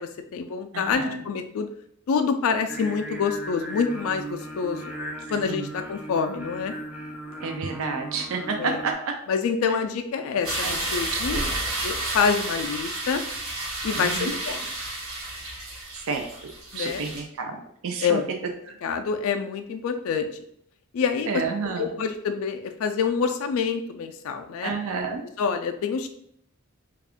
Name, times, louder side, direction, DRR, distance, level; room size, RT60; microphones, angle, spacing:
voice 1, 0.0-1.7 2.1-4.8 5.3-6.7 8.6-8.8 9.3-11.4 11.8-13.2 13.8-14.7 16.7-17.0 18.0-18.2 18.8-20.3 20.9-24.7 25.4-26.1, left 6 dB, 70° left, 6 dB, 0.3 m, -27 dB
voice 2, 0.7-1.2 5.5-5.7 7.4-8.9 10.6-10.8 11.1-11.6 14.0-14.4 16.0-16.3 16.7-18.2 18.7-18.8 21.3-21.9 24.6-25.2, right 4 dB, 65° right, 4 dB, 0.4 m, -30 dB
Singing, 2.7-8.9, right 1 dB, 5° right, 0.3 m, -37 dB
sound 1, 10.4-17.2, right 2 dB, 85° right, 1.1 m, -31 dB
3.4 x 2.4 x 3.5 m, 0.70 s
head